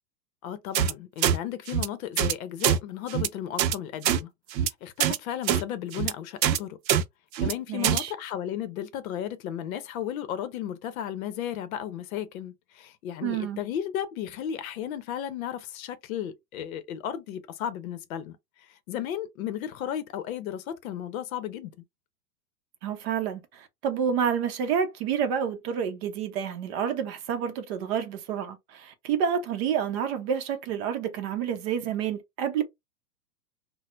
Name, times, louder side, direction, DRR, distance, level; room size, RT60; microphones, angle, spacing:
voice 1, 0.4-4.3 4.6-6.8 7.4-21.7, left 10 dB, 55° left, 0.7 m, -34 dB
sound 1, 0.7-0.9 1.2-1.4 1.7-1.9 2.2-2.3 2.6-2.8 3.1-3.3 3.6-3.8 4.0-4.2 4.5-4.7 5.0-5.2 5.5-5.6 5.9-6.1 6.4-6.6 6.9-7.0 7.3-7.5 7.8-8.0, right 9 dB, 85° right, 0.6 m, -23 dB
voice 2, 7.7-8.1 13.2-13.6 22.8-32.6, right 8 dB, 40° right, 0.7 m, -29 dB
4.1 x 2.1 x 2.4 m
hypercardioid pair, 125°, 50 cm